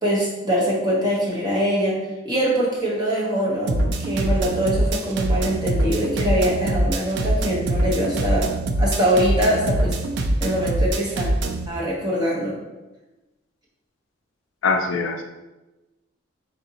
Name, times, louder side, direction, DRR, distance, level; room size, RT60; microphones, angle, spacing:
voice 1, 0.0-8.5 8.8-10.0 10.4-11.3 11.7-12.6, equal, 20° right, -5 dB, 0.9 m, -23 dB
sound 1, 3.7-11.7, right 1 dB, 55° right, 0.4 m, -23 dB
voice 2, 14.6-15.2, left 4 dB, 70° left, 5 dB, 0.4 m, -22 dB
3.9 x 3.3 x 2.8 m, 1.1 s
head